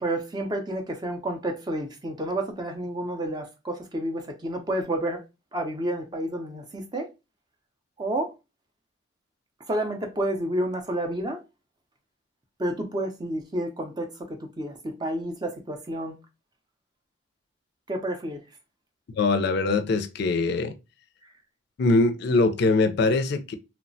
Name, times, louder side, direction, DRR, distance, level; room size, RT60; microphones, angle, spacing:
voice 1, 0.0-5.2 5.5-7.1 8.0-8.3 9.7-11.4 12.6-16.1 17.9-18.4, right 1 dB, 20° right, 0.5 m, -30 dB
voice 2, 19.2-20.7 21.8-23.5, left 3 dB, 60° left, 0.4 m, -22 dB
3.0 x 2.1 x 2.5 m
head